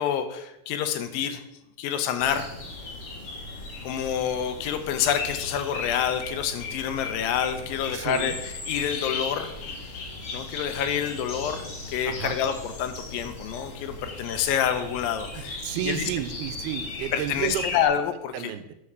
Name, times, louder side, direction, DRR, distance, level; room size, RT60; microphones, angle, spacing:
voice 1, 0.0-1.4 1.8-2.5 3.8-9.5 10.3-16.1 17.1-18.5, left 8 dB, 80° left, 7 dB, 2.3 m, -28 dB
sound 1, 2.2-17.9, left 3 dB, 45° left, 2.0 m, -37 dB
voice 2, 7.9-8.4 12.1-12.4 15.3-17.7 18.3-18.7, right 11 dB, 85° right, 10 dB, 2.5 m, -32 dB
8.7 x 4.8 x 6.6 m, 0.86 s
omnidirectional pair, 4.4 m